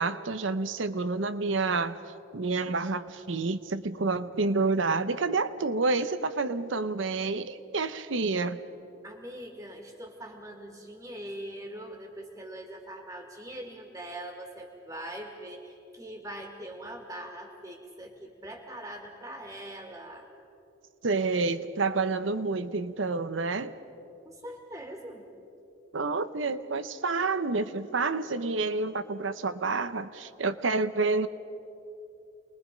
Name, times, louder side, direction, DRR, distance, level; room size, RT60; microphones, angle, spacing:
voice 1, 0.0-2.0 2.3-8.6 21.0-23.7 25.9-31.3, right 3 dB, 80° right, 12 dB, 0.8 m, -29 dB
voice 2, 9.0-20.3 24.3-25.2, right 1 dB, 20° right, 1 dB, 1.9 m, -42 dB
28.5 x 21.5 x 5.2 m, 2.8 s
head